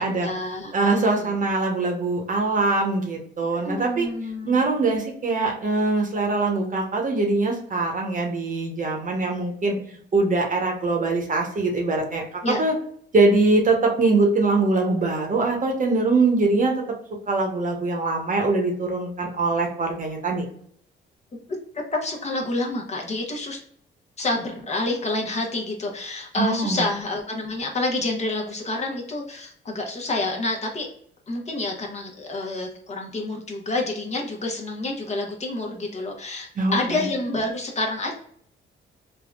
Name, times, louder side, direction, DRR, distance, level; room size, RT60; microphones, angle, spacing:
voice 1, 0.0-1.3 3.5-4.6 12.4-12.6 21.9-23.6 24.2-30.9 31.3-38.1, left 2 dB, 35° left, 1 dB, 0.8 m, -28 dB
voice 2, 0.7-4.1 4.4-9.8 10.1-12.2 12.6-12.7 13.1-16.8 17.3-20.5 26.4-26.9 36.6-37.1, right 3 dB, 40° right, 1 dB, 0.9 m, -22 dB
3.5 x 2.2 x 2.3 m, 0.64 s
cardioid pair, 90°, 20 cm